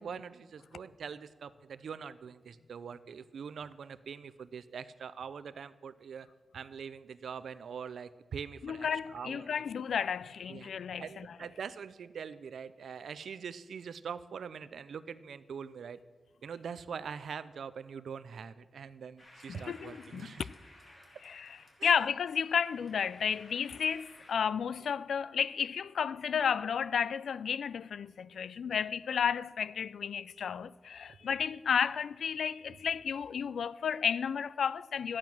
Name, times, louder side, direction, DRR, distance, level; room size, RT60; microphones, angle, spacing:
voice 1, 0.0-6.3 6.5-9.7 10.5-10.7 11.0-16.0 16.4-20.5 21.8-21.9 28.6-28.7, right 6 dB, 90° right, 0.5 m, -43 dB
voice 2, 8.6-11.4 19.5-20.5 21.2-35.2, left 7 dB, 85° left, 0.3 m, -32 dB
sound 1, 19.2-24.4, left 1 dB, 35° left, 2.5 m, -57 dB
12.5 x 8.8 x 6.0 m
wide cardioid pair, 175°, 0 cm